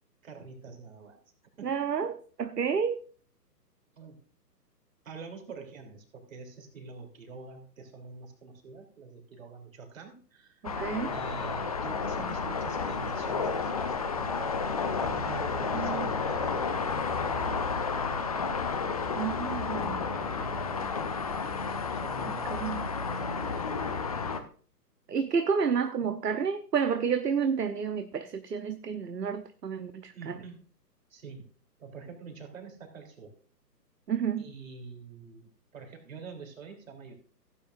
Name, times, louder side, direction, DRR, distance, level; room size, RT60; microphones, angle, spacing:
voice 1, 0.2-1.2 1.6-2.1 4.0-4.2 5.0-10.7 11.0-14.5 15.0-18.3 19.8-20.9 21.9-23.9 30.1-30.6 31.1-31.5 31.8-33.3 34.4-37.1, right 5 dB, 50° right, 3.5 m, -46 dB
voice 2, 1.6-2.1 2.4-3.0 10.6-11.2 15.7-16.1 19.2-20.0 22.5-22.9 25.1-30.4 34.1-34.5, right 6 dB, 70° right, 1.0 m, -30 dB
sound 1, 10.6-24.4, left 5 dB, 25° left, 0.6 m, -31 dB
16.5 x 9.0 x 2.6 m
figure-of-eight pair, 130°, 50 cm